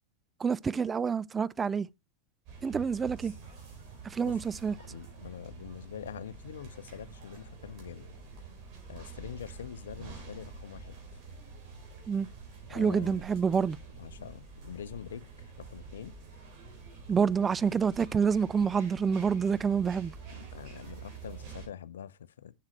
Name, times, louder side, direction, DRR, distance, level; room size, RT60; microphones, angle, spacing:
voice 1, 0.4-1.9 2.6-3.3 4.0-4.7 12.1-12.3 12.7-13.8 17.1-20.1, right 6 dB, 20° right, 0.3 m, -28 dB
sound 1, 2.5-21.7, right 5 dB, 40° right, 4.3 m, -47 dB
voice 2, 4.9-8.1 8.9-11.0 12.7-13.2 14.0-16.1 20.3-22.5, left 9 dB, 65° left, 0.6 m, -44 dB
7.5 x 7.3 x 3.1 m
figure-of-eight pair, 90°, 0 cm